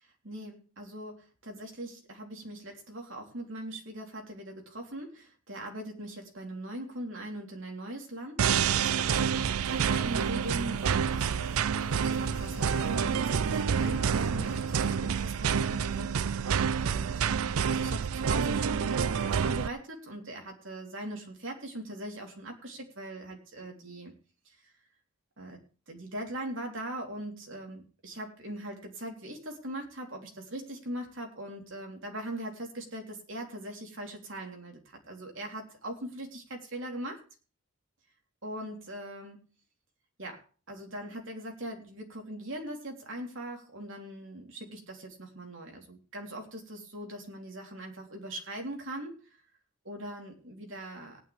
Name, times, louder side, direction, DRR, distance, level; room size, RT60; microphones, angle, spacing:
voice 1, 0.2-16.2 16.8-24.1 24.5-24.6 25.4-25.6 25.9-37.2 38.4-39.4 40.2-40.4 40.7-49.2 49.9-51.2, right 1 dB, 60° right, 2 dB, 3.5 m, -41 dB
sound 1, 8.4-19.7, right 7 dB, 80° right, 0.5 m, -28 dB
sound 2, 9.6-15.0, left 3 dB, 65° left, 1.0 m, -49 dB
18.5 x 9.7 x 3.4 m, 0.37 s
head